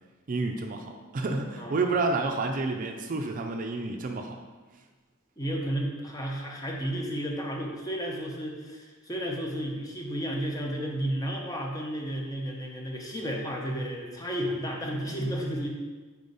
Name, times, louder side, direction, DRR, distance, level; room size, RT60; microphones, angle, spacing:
voice 1, 0.3-4.4, right 3 dB, 40° right, 4 dB, 0.4 m, -29 dB
voice 2, 1.6-1.9 5.4-15.7, equal, 20° left, -1 dB, 0.8 m, -32 dB
5.0 x 4.6 x 4.0 m, 1.3 s
head